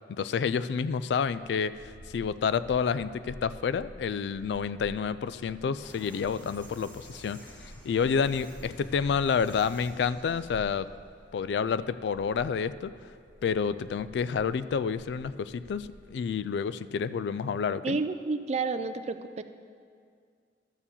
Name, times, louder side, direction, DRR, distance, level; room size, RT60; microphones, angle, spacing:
voice 1, 0.1-10.9 11.3-13.1 13.4-18.0, left 6 dB, 70° left, 16 dB, 0.3 m, -29 dB
sound 1, 1.6-16.1, equal, 65° right, 0.8 m, -51 dB
sound 2, 5.8-10.6, equal, 10° left, 1.6 m, -51 dB
voice 2, 17.8-19.4, right 3 dB, 40° right, 10 dB, 0.4 m, -30 dB
12.5 x 4.5 x 7.1 m, 2.2 s
head